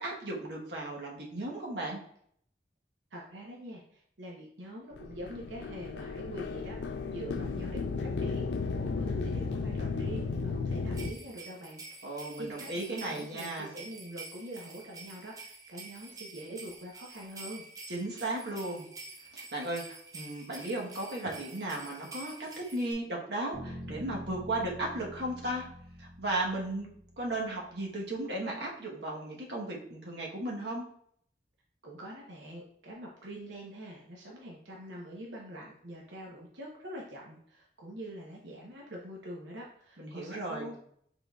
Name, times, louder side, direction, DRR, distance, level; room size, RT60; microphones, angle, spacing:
voice 1, 0.0-2.0 12.0-13.7 17.9-18.8 19.3-25.6 26.0-26.9 27.2-30.9 40.0-40.7, right 1 dB, 70° right, -2 dB, 1.1 m, -35 dB
voice 2, 3.1-17.6 31.8-40.8, right 1 dB, 90° right, -2 dB, 0.9 m, -45 dB
sound 1, 4.9-11.1, left 4 dB, 70° left, 0.4 m, -34 dB
sound 2, 10.9-22.9, right 3 dB, 20° right, 0.6 m, -48 dB
sound 3, 23.5-27.6, equal, 10° left, 1.9 m, -46 dB
5.6 x 3.9 x 2.3 m, 0.66 s
head